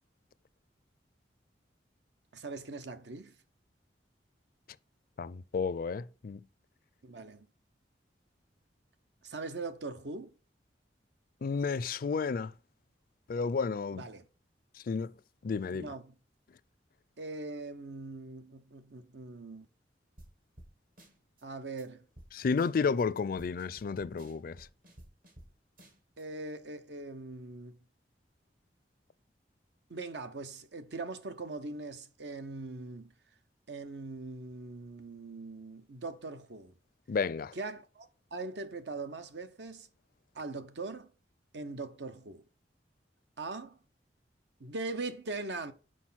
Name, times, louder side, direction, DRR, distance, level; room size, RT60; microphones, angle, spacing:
voice 1, 2.3-3.4 7.0-7.5 9.2-10.3 13.9-14.3 15.7-16.1 17.2-19.7 21.4-22.0 26.2-27.8 29.9-33.1 33.7-36.7 37.5-39.9 40.3-41.1 41.5-42.4 43.4-43.8 44.6-45.7, right 3 dB, 70° right, 0.8 m, -41 dB
voice 2, 5.2-6.4 11.4-12.5 13.3-14.0 14.9-15.1 15.4-15.9 22.3-24.7 37.1-37.5, left 5 dB, 50° left, 0.4 m, -32 dB
sound 1, 20.2-20.3 20.6-20.7 21.0-21.4 21.8-21.9 22.2-22.3 22.6-23.0 23.4-25.5 25.8-26.2, right 1 dB, 55° right, 1.7 m, -54 dB
6.3 x 4.8 x 5.7 m
head